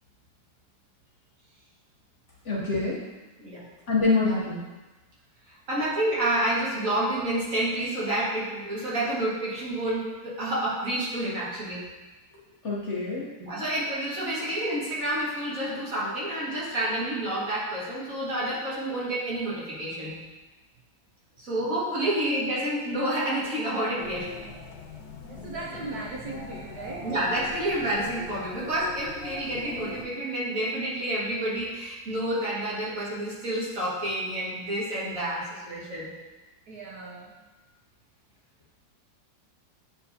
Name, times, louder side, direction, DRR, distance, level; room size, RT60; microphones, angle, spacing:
voice 1, 2.4-3.0 3.9-4.6 12.6-13.3, left 3 dB, 50° left, -5 dB, 1.0 m, -25 dB
voice 2, 5.7-11.8 13.4-20.2 21.4-24.3 27.0-36.1, right 1 dB, 50° right, -7 dB, 2.1 m, -29 dB
sound 1, 24.0-30.0, left 2 dB, 85° left, 1.5 m, -40 dB
voice 3, 25.4-27.1 36.7-37.4, right 4 dB, 65° right, -3 dB, 1.2 m, -38 dB
8.4 x 4.7 x 2.7 m, 1.2 s
omnidirectional pair, 1.9 m